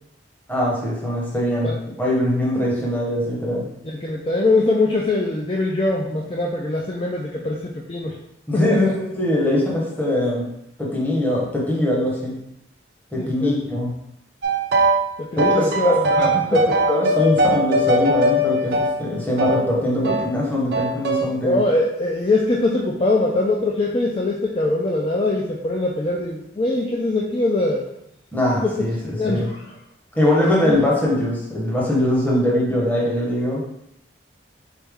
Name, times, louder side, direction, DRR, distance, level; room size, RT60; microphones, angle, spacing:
voice 1, 0.5-3.6 8.5-10.5 10.8-12.4 13.1-13.9 15.5-21.6 28.3-29.0 29.3-29.5 30.2-33.6, left 1 dB, 10° left, -5 dB, 0.9 m, -21 dB
voice 2, 3.8-8.1 8.5-8.9 13.1-13.6 15.2-16.6 21.4-27.9 28.6-29.6 30.6-30.8, left 2 dB, 30° left, -2 dB, 0.4 m, -22 dB
sound 1, 14.4-15.1 15.4-19.6 20.0-20.3 20.7-21.3, right 1 dB, 60° right, 0.5 m, -20 dB
4.0 x 3.3 x 3.5 m, 0.81 s
head